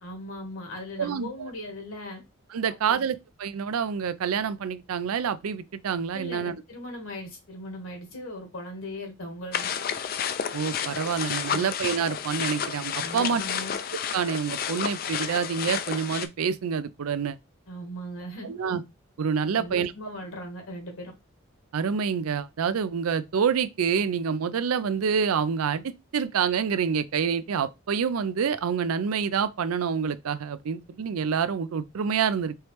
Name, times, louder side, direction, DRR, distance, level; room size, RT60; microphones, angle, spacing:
voice 1, 0.0-2.2 2.9-3.0 6.1-9.7 11.5-11.6 13.0-13.8 17.7-18.5 19.6-21.1, left 1 dB, 70° left, 1.7 m, -38 dB
voice 2, 1.0-1.5 2.5-6.6 10.5-13.4 14.1-17.4 18.4-18.8 19.2-19.9 21.7-32.5, right 6 dB, 90° right, 0.4 m, -27 dB
sound 1, 9.5-16.3, left 8 dB, 45° left, 0.3 m, -31 dB
4.5 x 3.1 x 3.2 m
head